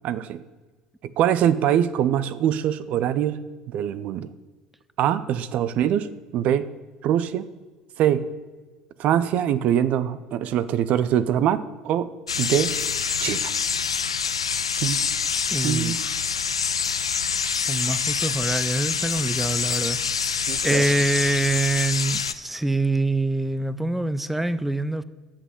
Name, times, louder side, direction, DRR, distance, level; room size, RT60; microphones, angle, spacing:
voice 1, 0.0-0.4 1.0-4.3 5.0-6.7 7.0-7.5 8.0-8.3 9.0-12.1 12.4-12.8 13.2-13.5 14.8-15.0 15.6-16.0 20.5-20.9, right 10 dB, 55° right, 15 dB, 0.5 m, -23 dB
sound 1, 12.3-22.3, left 6 dB, 90° left, 0.3 m, -26 dB
voice 2, 15.5-16.2 17.7-25.0, right 2 dB, 5° right, 15 dB, 0.5 m, -25 dB
8.2 x 7.3 x 7.3 m, 1.3 s
figure-of-eight pair, 60°, 3 cm